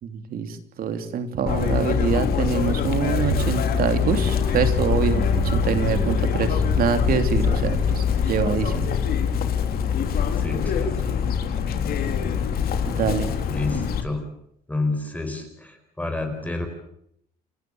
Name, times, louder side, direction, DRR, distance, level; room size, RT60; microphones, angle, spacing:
voice 1, 0.0-8.9 12.9-13.3, right 7 dB, 60° right, 8 dB, 3.3 m, -25 dB
Chirp tweet, 1.5-14.0, left 7 dB, 65° left, 3.3 m, -24 dB
sound 1, 3.1-9.3, right 7 dB, 90° right, 7.5 m, -33 dB
sound 2, 3.9-11.1, left 1 dB, 35° left, 2.2 m, -35 dB
voice 2, 10.4-11.1 13.5-14.2 14.7-16.7, left 2 dB, 10° left, 5 dB, 4.6 m, -29 dB
29.5 x 14.5 x 8.8 m, 0.74 s
cardioid pair, 110°, 17 cm